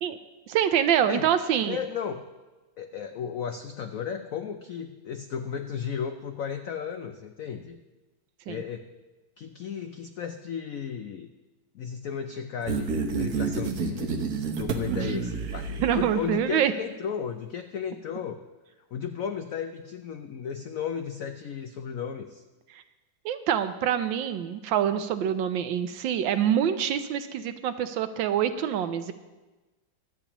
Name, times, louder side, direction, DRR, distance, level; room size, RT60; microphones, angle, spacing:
voice 1, 0.5-1.8 8.5-8.6 14.9-15.0 15.8-16.7 22.7-22.8 23.2-29.1, right 9 dB, 75° right, 10 dB, 1.4 m, -26 dB
voice 2, 1.7-2.2 2.8-7.8 8.5-8.9 9.4-11.3 11.7-18.4 18.9-22.4, left 7 dB, 90° left, 7 dB, 0.7 m, -34 dB
sound 1, 12.7-16.4, right 5 dB, 55° right, 1.2 m, -30 dB
24.0 x 8.5 x 3.0 m, 1.2 s
omnidirectional pair, 2.1 m